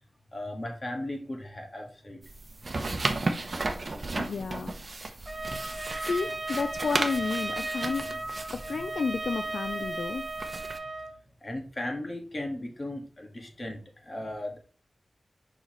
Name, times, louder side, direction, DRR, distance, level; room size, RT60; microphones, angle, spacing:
voice 1, 0.3-2.2 8.8-8.9 11.4-14.6, left 1 dB, 35° left, 1.8 m, -36 dB
sound 1, 2.2-10.8, right 2 dB, 45° right, 0.9 m, -35 dB
voice 2, 4.2-4.7 6.0-8.2 8.5-10.3, left 5 dB, 85° left, 0.4 m, -31 dB
Trumpet, 5.2-11.1, right 2 dB, 15° right, 1.2 m, -35 dB
6.4 x 5.6 x 3.1 m
wide cardioid pair, 90°, 0 cm